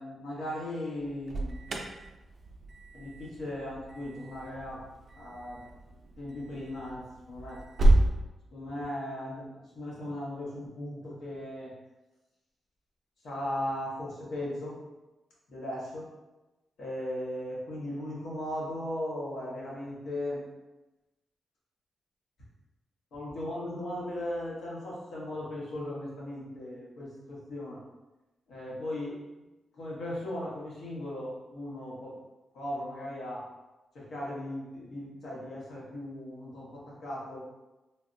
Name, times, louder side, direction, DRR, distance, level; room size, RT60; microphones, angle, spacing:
voice 1, 0.0-1.6 2.9-4.8 5.1-5.7 6.2-7.6 8.5-11.7 13.2-14.7 15.5-16.0 16.8-20.4 23.1-27.8 28.5-29.2 29.7-32.1 32.5-33.4 33.9-37.4, left 1 dB, 85° left, -6 dB, 1.1 m, -37 dB
Alarm, 1.0-8.1, right 1 dB, 55° right, 0.3 m, -30 dB
3.3 x 2.1 x 2.5 m, 1.1 s
wide cardioid pair, 115°, 0 cm